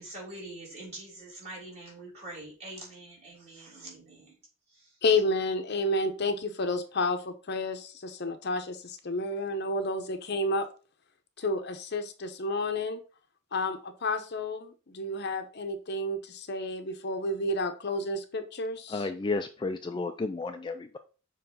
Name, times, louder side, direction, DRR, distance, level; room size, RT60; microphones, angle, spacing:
voice 1, 0.0-4.4 4.7-4.9, right 2 dB, 30° right, -5 dB, 3.5 m, -44 dB
voice 2, 5.0-10.7 11.4-13.0 13.5-19.1, left 2 dB, 55° left, 8 dB, 0.7 m, -30 dB
voice 3, 18.9-21.0, left 3 dB, 25° left, 7 dB, 0.3 m, -32 dB
6.9 x 3.1 x 5.3 m, 0.36 s
head